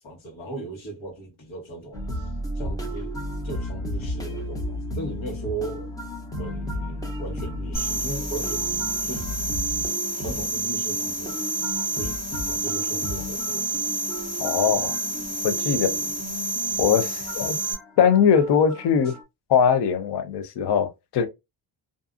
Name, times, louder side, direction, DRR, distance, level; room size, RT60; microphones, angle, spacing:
voice 1, 0.0-3.2 3.4-5.9 6.4-9.3 9.8-9.9 10.2-11.6 11.9-13.8 15.7-16.1 19.0-19.1, right 2 dB, 80° left, 1.3 m, -37 dB
sound 1, 1.9-19.2, equal, 10° left, 0.4 m, -34 dB
sound 2, 7.7-17.7, right 2 dB, 40° left, 1.5 m, -29 dB
voice 2, 14.4-14.9 15.4-15.9 16.8-17.6 18.0-19.1 19.5-21.3, left 7 dB, 60° left, 0.6 m, -21 dB
2.6 x 2.4 x 2.4 m
wide cardioid pair, 175°, 47 cm